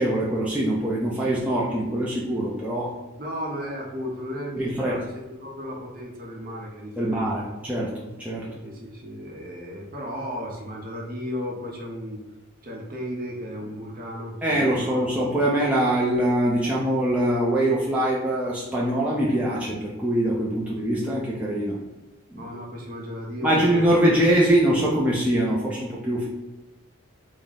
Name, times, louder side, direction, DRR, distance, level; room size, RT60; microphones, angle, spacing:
voice 1, 0.0-3.0 4.6-5.0 7.0-8.5 14.4-21.8 22.3-22.4 23.4-26.3, right 1 dB, 5° right, -6 dB, 0.4 m, -23 dB
voice 2, 3.2-7.3 8.6-12.2 12.6-15.0 22.4-24.1, equal, 40° right, -1 dB, 0.7 m, -34 dB
3.5 x 2.0 x 3.9 m, 1.1 s
head